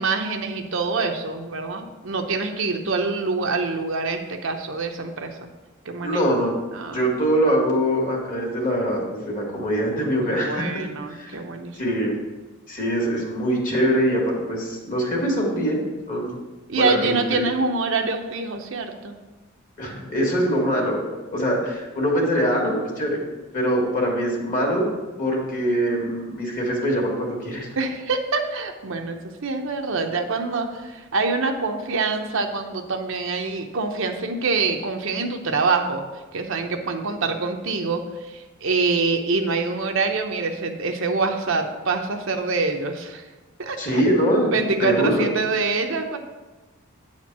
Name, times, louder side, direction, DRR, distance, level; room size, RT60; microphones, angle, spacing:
voice 1, 0.0-5.5 5.8-6.2 6.7-7.1 10.2-12.0 16.7-19.2 27.8-36.1 36.3-43.2 43.6-44.0 44.5-46.2, right 4 dB, 65° right, 4 dB, 0.8 m, -25 dB
voice 2, 6.0-6.5 6.9-11.4 11.8-12.2 12.7-15.8 16.1-16.4 16.7-17.4 19.8-23.2 23.5-24.9 25.2-27.7 43.8-45.2, equal, 40° left, -1 dB, 2.0 m, -23 dB
9.0 x 4.4 x 6.0 m, 1.2 s
head